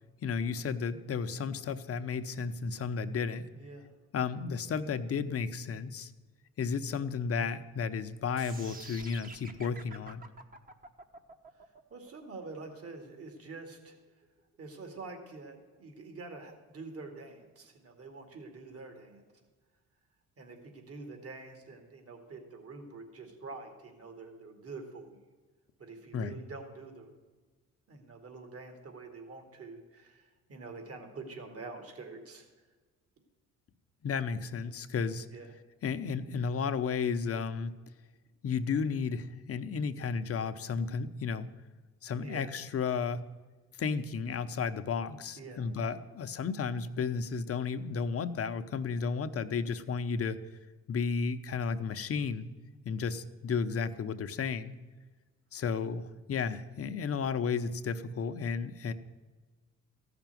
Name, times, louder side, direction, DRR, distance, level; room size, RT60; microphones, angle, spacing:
voice 1, 0.2-3.4 4.1-6.1 6.6-10.2 26.1-26.4 34.0-35.3 35.8-37.7 38.4-41.5 42.0-43.2 43.8-50.4 50.9-52.4 52.8-54.7 55.5-58.9, left 5 dB, 50° left, 10 dB, 0.9 m, -33 dB
voice 2, 3.5-3.9 11.9-14.0 14.6-19.2 20.4-25.2 25.8-27.1 27.9-32.5 35.3-35.5 42.2-42.5 45.4-45.7, right 3 dB, 50° right, 5 dB, 2.4 m, -46 dB
sound 1, 8.4-14.4, right 2 dB, 30° right, 1.2 m, -50 dB
14.5 x 6.0 x 9.2 m, 1.3 s
cardioid pair, 90°, 30 cm